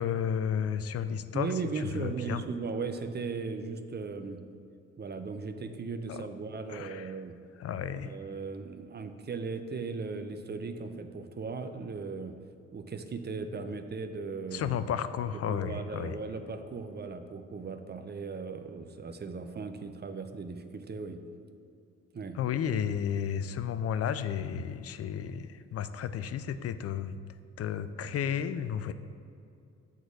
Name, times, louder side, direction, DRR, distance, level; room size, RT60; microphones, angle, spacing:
voice 1, 0.0-2.4 6.1-6.3 6.7-7.1 7.6-8.1 14.5-16.2 22.3-27.2 27.6-28.9, left 8 dB, 40° left, 12 dB, 0.5 m, -33 dB
voice 2, 1.3-4.4 5.0-7.3 7.9-12.3 12.7-14.7 15.5-21.2 22.1-22.4, right 4 dB, 25° right, 8 dB, 0.7 m, -37 dB
7.3 x 4.0 x 6.2 m, 2.4 s
figure-of-eight pair, 40°, 38 cm